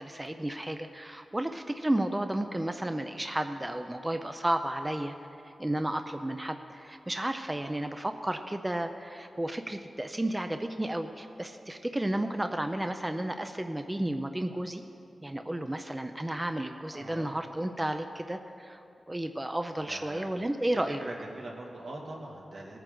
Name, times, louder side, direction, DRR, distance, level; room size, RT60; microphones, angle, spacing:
voice 1, 0.0-5.1 5.4-14.8 15.2-21.0, right 1 dB, 15° right, 7 dB, 0.5 m, -32 dB
voice 2, 16.9-17.4 19.9-20.3 20.9-22.8, right 2 dB, 80° right, -2 dB, 2.1 m, -42 dB
19.5 x 9.1 x 3.8 m, 2.7 s
wide cardioid pair, 105°, 0 cm